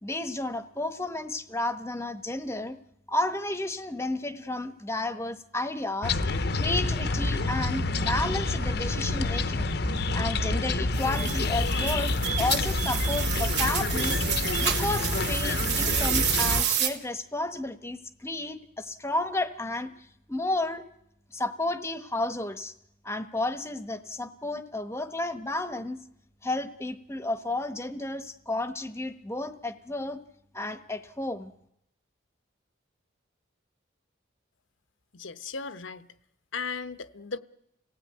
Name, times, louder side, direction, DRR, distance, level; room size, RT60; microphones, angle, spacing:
voice 1, 0.0-2.8 3.1-6.2 6.6-9.7 10.1-14.2 14.6-20.8 21.3-22.7 23.0-26.0 26.4-30.2 30.5-31.5, left 2 dB, 15° left, 1.0 m, -32 dB
sound 1, 6.0-16.6, left 3 dB, 55° left, 0.8 m, -28 dB
sound 2, 6.1-14.8, right 1 dB, 85° right, 1.1 m, -38 dB
sound 3, 11.0-16.9, right 9 dB, 55° right, 2.5 m, -29 dB
voice 2, 35.1-36.1 36.5-37.4, left 5 dB, 80° left, 1.0 m, -36 dB
27.0 x 17.0 x 9.4 m
head